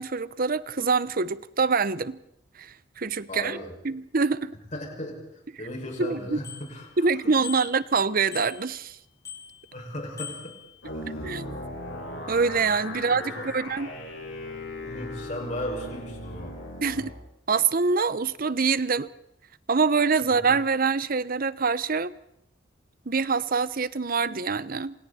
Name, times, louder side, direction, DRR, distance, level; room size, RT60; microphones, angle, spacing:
voice 1, 0.0-2.2 2.6-3.6 3.8-4.5 6.0-6.4 7.0-9.0 11.2-11.6 12.3-13.9 16.8-17.1 17.5-19.1 19.7-22.1 23.1-25.0, right 4 dB, 45° right, 0.8 m, -25 dB
voice 2, 3.3-3.7 4.7-5.2 5.6-7.4 9.7-10.6 11.0-11.3 12.9-13.5 14.8-16.6 20.2-20.5, left 1 dB, 40° left, 6.1 m, -36 dB
Bicycle bell, 6.4-7.0 7.4-7.9 8.3-8.9 9.2-9.8 10.2-10.9, left 7 dB, 15° left, 7.9 m, -42 dB
sound 1, 10.8-17.1, left 1 dB, 75° left, 7.2 m, -37 dB
27.5 x 27.5 x 4.3 m
head